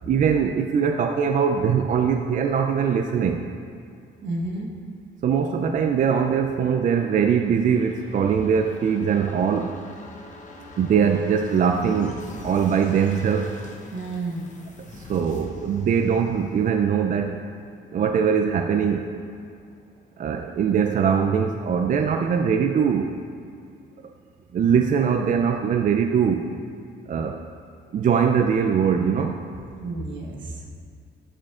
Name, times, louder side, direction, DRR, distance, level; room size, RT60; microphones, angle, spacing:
voice 1, 0.1-3.4 5.2-9.7 10.8-12.2 12.4-13.5 14.9-17.4 17.9-19.1 20.2-23.2 24.5-26.5 27.1-27.4 27.9-29.4, right 7 dB, 40° right, 5 dB, 0.4 m, -22 dB
voice 2, 4.2-4.7 13.9-14.4 29.8-30.7, right 2 dB, 70° right, 0 dB, 1.2 m, -31 dB
sound 1, 7.1-20.6 20.9-21.0, left 3 dB, 40° left, 0.8 m, -45 dB
11.5 x 5.0 x 2.4 m, 2.3 s
cardioid pair, 90°, 20 cm